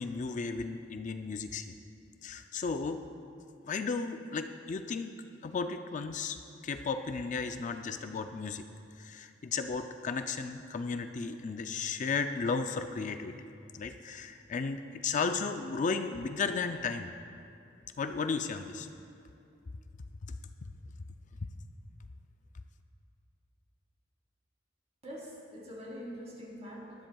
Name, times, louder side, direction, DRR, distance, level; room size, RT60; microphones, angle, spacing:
voice 1, 0.0-1.7 2.2-3.0 3.6-5.1 5.4-6.4 6.6-8.7 9.0-13.4 13.7-17.1 18.0-18.9, left 4 dB, 40° left, 7 dB, 0.4 m, -34 dB
voice 2, 25.0-27.1, equal, 35° right, -4 dB, 3.4 m, -44 dB
19.5 x 13.0 x 2.3 m, 2.5 s
head